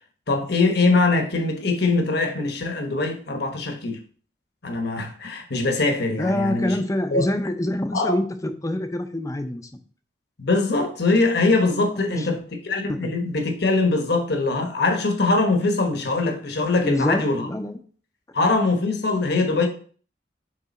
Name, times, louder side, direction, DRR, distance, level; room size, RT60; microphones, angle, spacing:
voice 1, 0.3-4.0 4.6-6.8 7.1-7.3 7.9-8.2 10.4-17.5 18.3-19.7, left 3 dB, 60° left, 1.1 m, -22 dB
voice 2, 6.2-9.7 11.9-12.3 12.9-13.1 16.8-17.8, left 1 dB, 20° left, 0.6 m, -25 dB
7.5 x 3.4 x 4.2 m
head